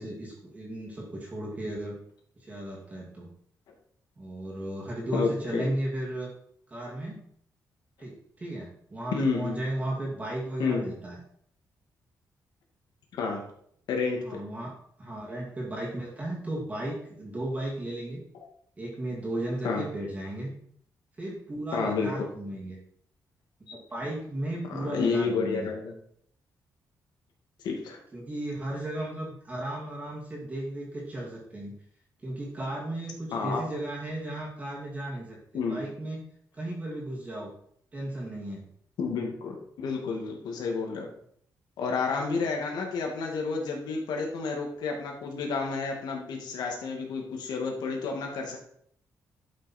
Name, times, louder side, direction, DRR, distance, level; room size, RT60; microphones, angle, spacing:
voice 1, 0.0-2.0 2.4-3.3 4.2-6.3 6.7-7.2 8.0-11.2 14.2-14.7 15.0-18.2 18.8-20.5 21.2-22.8 23.9-25.7 28.1-31.7 32.2-35.4 35.7-36.2 36.5-37.5 37.9-38.7, right 1 dB, 20° right, -4 dB, 2.3 m, -35 dB
voice 2, 5.1-5.7 9.1-9.6 10.6-10.8 13.2-13.4 13.9-14.4 19.6-19.8 21.7-22.3 24.7-25.9 27.6-28.0 33.3-33.6 35.5-35.8 39.0-41.1 41.8-48.6, left 4 dB, 85° left, 1 dB, 2.2 m, -30 dB
11.5 x 5.9 x 4.4 m, 0.65 s
wide cardioid pair, 160°, 7 cm